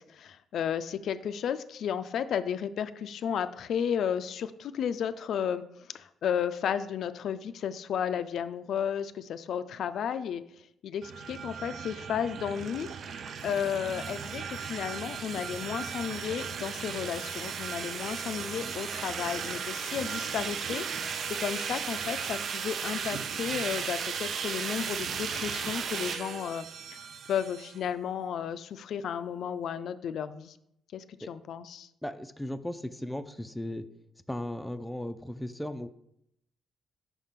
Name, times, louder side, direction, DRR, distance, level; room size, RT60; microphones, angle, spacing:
voice 1, 0.0-5.6 5.9-10.4 10.8-12.9 13.4-26.7 26.9-27.0 27.3-30.5 30.9-31.9, left 8 dB, 70° left, 11 dB, 0.3 m, -33 dB
sound 1, 11.0-27.8, right 6 dB, 60° right, 0.4 m, -36 dB
voice 2, 32.0-33.9 34.3-35.9, left 1 dB, 5° left, 9 dB, 0.4 m, -36 dB
5.8 x 3.6 x 5.6 m, 0.75 s
cardioid pair, 90°, 0 cm